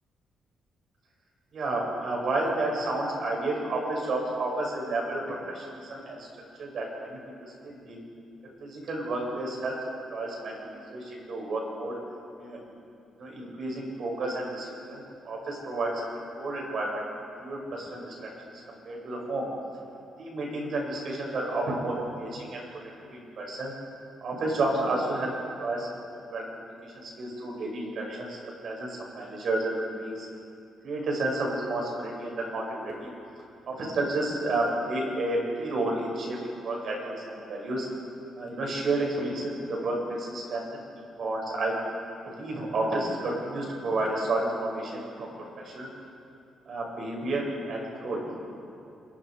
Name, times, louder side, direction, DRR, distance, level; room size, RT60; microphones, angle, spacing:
voice 1, 1.5-6.3 6.6-8.0 8.6-9.8 10.1-10.6 10.9-11.9 12.4-12.6 13.2-17.0 17.4-18.3 18.7-19.5 20.2-23.7 24.2-25.3 25.6-25.9 26.3-30.3 30.8-33.1 33.7-36.4 36.6-37.9 38.4-40.6 41.0-41.7 42.3-45.9 46.7-48.2, right 2 dB, 60° right, -1 dB, 8.0 m, -31 dB
27.5 x 23.0 x 5.3 m, 2.6 s
cardioid pair, 100°, 0 cm